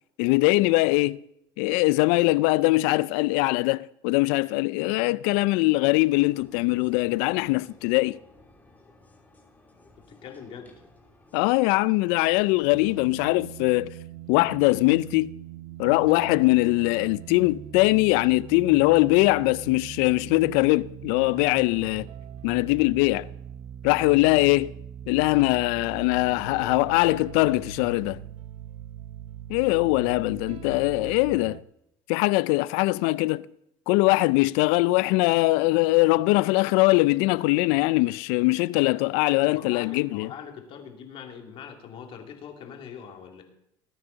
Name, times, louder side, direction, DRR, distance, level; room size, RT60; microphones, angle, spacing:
voice 1, 0.2-1.2 1.6-8.2 11.3-13.9 14.3-15.3 15.8-22.1 22.4-23.3 23.8-24.7 25.1-28.2 29.5-31.6 32.1-33.5 33.9-40.3, left 21 dB, 75° left, 0.4 m, -22 dB
sound 1, 6.0-13.2, left 2 dB, 15° left, 2.9 m, -56 dB
voice 2, 10.1-10.8 39.3-43.4, left 7 dB, 55° left, 2.6 m, -42 dB
sound 2, 12.7-31.6, right 11 dB, 60° right, 0.7 m, -41 dB
19.5 x 9.3 x 4.0 m
supercardioid pair, 95°, 11 cm